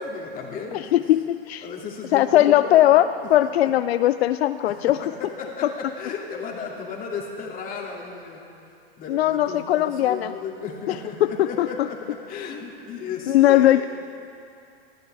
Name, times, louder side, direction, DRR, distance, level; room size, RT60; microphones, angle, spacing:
voice 1, 0.0-1.0 1.6-3.0 3.4-3.5 4.7-4.9 5.2-8.5 9.0-13.9, left 5 dB, 25° left, -1 dB, 2.5 m, -34 dB
voice 2, 0.7-1.6 2.1-3.0 3.3-5.0 9.1-10.3 11.2-11.9 13.3-13.8, left 13 dB, 80° left, 12 dB, 0.5 m, -19 dB
20.0 x 14.5 x 3.4 m, 2.5 s
hypercardioid pair, 120°, 31 cm